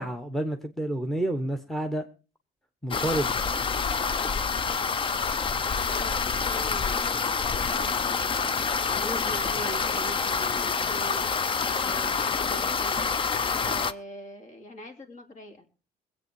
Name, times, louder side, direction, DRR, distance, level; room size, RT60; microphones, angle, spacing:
voice 1, 0.0-2.0 2.8-3.4, right 1 dB, ahead, 7 dB, 1.2 m, -29 dB
sound 1, 2.9-13.9, left 5 dB, 30° left, 0.7 m, -27 dB
voice 2, 5.6-11.2 11.7-13.0 13.5-15.6, equal, 45° left, 4 dB, 3.2 m, -42 dB
21.5 x 8.4 x 4.7 m, 0.34 s
cardioid pair, 110°, 17 cm